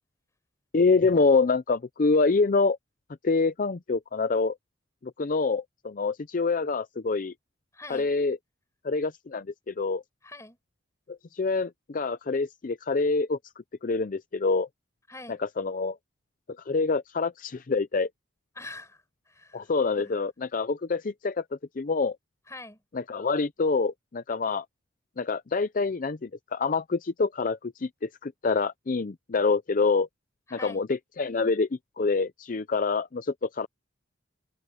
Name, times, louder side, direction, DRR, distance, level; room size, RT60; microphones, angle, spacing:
voice 1, 0.7-2.8 3.2-4.6 5.0-7.3 7.9-8.4 8.8-10.0 11.1-13.4 13.8-14.7 15.4-16.0 16.7-18.1 19.5-21.4 21.8-22.2 22.9-24.6 25.2-30.1 30.5-31.7 32.0-33.7, left 4 dB, 45° left, 0.5 m, -26 dB
voice 2, 7.7-8.1 10.2-10.6 15.1-15.4 18.6-19.6 20.0-20.1 22.5-22.8 30.5-30.8, left 2 dB, 15° left, 7.7 m, -44 dB
head